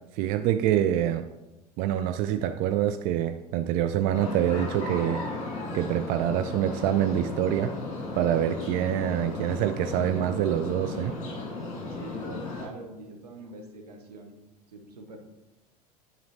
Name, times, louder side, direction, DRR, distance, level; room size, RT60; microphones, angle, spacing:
voice 1, 0.1-1.3 1.8-5.2 5.7-7.8 8.2-11.2, right 11 dB, 45° right, 9 dB, 0.4 m, -26 dB
sound 1, 4.1-12.7, left 3 dB, 35° left, 2.1 m, -35 dB
voice 2, 11.9-14.3 14.7-15.2, right 1 dB, 75° right, 3 dB, 1.1 m, -43 dB
10.5 x 4.2 x 2.8 m, 1.0 s
figure-of-eight pair, 80°, 20 cm